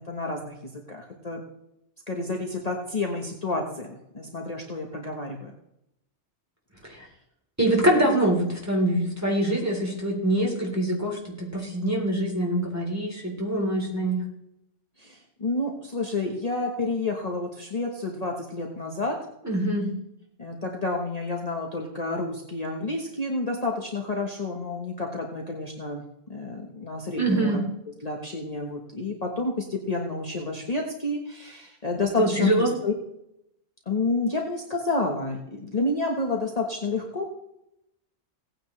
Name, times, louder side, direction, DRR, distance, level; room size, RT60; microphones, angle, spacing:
voice 1, 0.1-1.4 2.1-5.5 15.0-19.1 20.4-26.0 26.3-27.5 28.0-32.9 33.9-37.3, left 3 dB, 35° left, 1 dB, 1.3 m, -30 dB
voice 2, 7.6-14.2 19.4-19.9 27.2-27.6 32.2-32.7, right 1 dB, 10° right, -2 dB, 3.4 m, -24 dB
17.5 x 9.2 x 3.2 m, 0.83 s
omnidirectional pair, 1.3 m